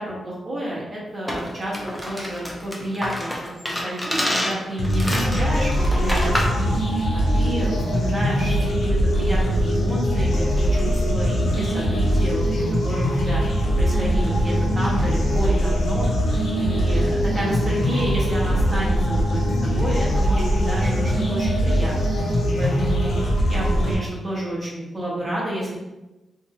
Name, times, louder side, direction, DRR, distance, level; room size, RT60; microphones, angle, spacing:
voice 1, 0.0-1.8 2.0-6.8 7.3-13.4 13.8-16.1 16.5-22.2 22.6-23.2 23.5-25.8, right 1 dB, 30° right, -6 dB, 0.8 m, -30 dB
sound 1, 1.3-6.6, left 1 dB, 5° left, 0.4 m, -28 dB
sound 2, 4.8-23.9, equal, 65° left, 0.6 m, -21 dB
2.7 x 2.4 x 2.6 m, 1.0 s
wide cardioid pair, 165°, 0 cm